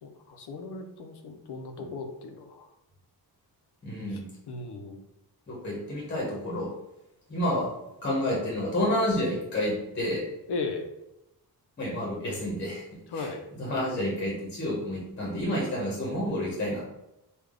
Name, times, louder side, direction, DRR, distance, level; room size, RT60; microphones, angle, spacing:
voice 1, 0.0-2.7 4.1-5.0 10.5-10.9 13.1-13.4, left 3 dB, 85° left, 4 dB, 0.6 m, -37 dB
voice 2, 3.8-4.3 5.5-6.7 7.3-7.7 8.0-10.2 11.8-12.8 13.2-13.3 13.6-16.8, left 1 dB, 30° left, -5 dB, 0.9 m, -29 dB
3.4 x 2.3 x 3.6 m, 0.88 s
wide cardioid pair, 170°, 39 cm